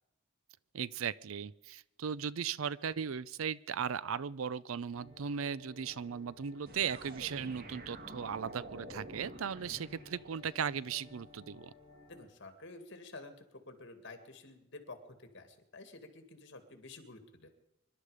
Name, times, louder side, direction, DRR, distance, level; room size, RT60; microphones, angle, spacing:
voice 1, 0.7-11.7, right 7 dB, 90° right, 20 dB, 0.5 m, -37 dB
sound 1, 4.9-12.3, left 2 dB, 15° right, 4.7 m, -57 dB
sound 2, 6.7-10.6, right 2 dB, 45° right, 1.6 m, -49 dB
voice 2, 12.1-15.0 15.3-17.5, left 2 dB, 60° left, 7 dB, 2.2 m, -51 dB
25.0 x 11.5 x 5.0 m, 0.92 s
head